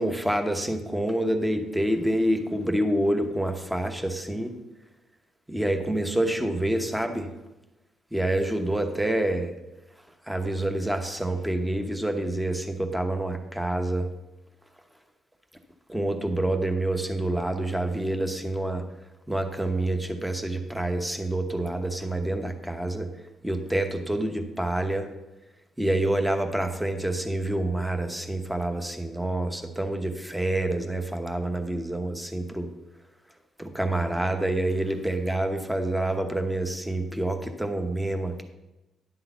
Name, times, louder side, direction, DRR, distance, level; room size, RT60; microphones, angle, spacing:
voice 1, 0.0-4.5 5.5-7.3 8.1-9.5 10.3-14.1 15.9-18.8 19.3-23.1 23.4-25.1 25.8-32.7 33.6-38.4, right 1 dB, 5° right, 6 dB, 0.9 m, -27 dB
10.0 x 3.8 x 6.8 m, 1.0 s
cardioid pair, 90°, 0 cm